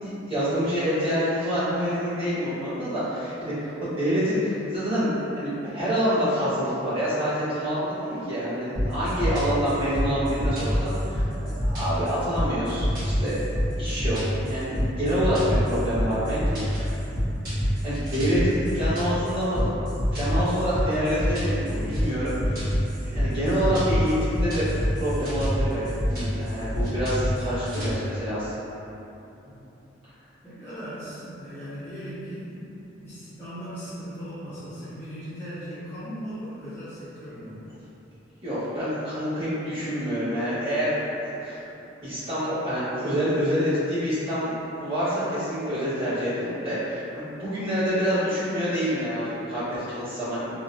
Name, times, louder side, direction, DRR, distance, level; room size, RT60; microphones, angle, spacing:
voice 1, 0.0-13.4 13.8-16.9 17.6-19.7 20.1-22.6 23.0-24.7 24.9-28.7 38.4-41.6 42.0-50.5, equal, 30° right, -15 dB, 1.3 m, -27 dB
sound 1, 8.8-27.9, equal, 50° right, 1.1 m, -26 dB
voice 2, 30.4-32.7 33.0-37.7, equal, 10° left, -14 dB, 0.5 m, -38 dB
2.9 x 2.2 x 2.5 m, 2.9 s
head